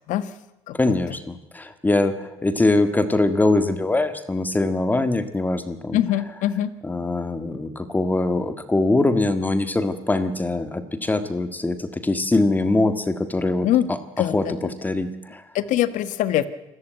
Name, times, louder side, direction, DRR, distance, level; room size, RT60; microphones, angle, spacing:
voice 1, 0.7-6.2 6.8-15.4, left 2 dB, 15° left, 10 dB, 1.7 m, -23 dB
voice 2, 5.9-6.7 13.6-13.9 14.2-14.5 15.5-16.5, left 12 dB, 70° left, 13 dB, 1.4 m, -22 dB
27.0 x 14.5 x 9.2 m, 0.96 s
cardioid pair, 125°, 13 cm